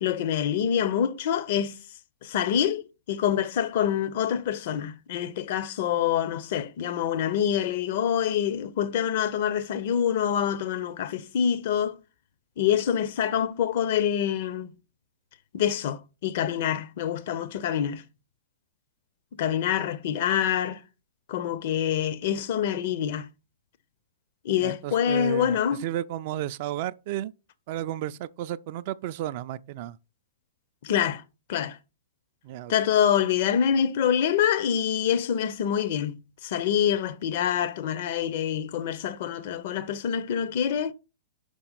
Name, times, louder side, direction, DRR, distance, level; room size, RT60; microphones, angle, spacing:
voice 1, 0.0-1.8 2.2-12.0 12.6-14.7 15.5-18.0 19.3-20.8 21.3-23.3 24.4-25.8 30.8-31.2 31.5-31.8 32.7-40.9, left 9 dB, 50° left, 0.6 m, -26 dB
voice 2, 24.6-27.3 27.7-30.0 32.4-32.7, right 13 dB, 45° right, 0.3 m, -33 dB
5.6 x 5.2 x 4.0 m
figure-of-eight pair, 105°, 0 cm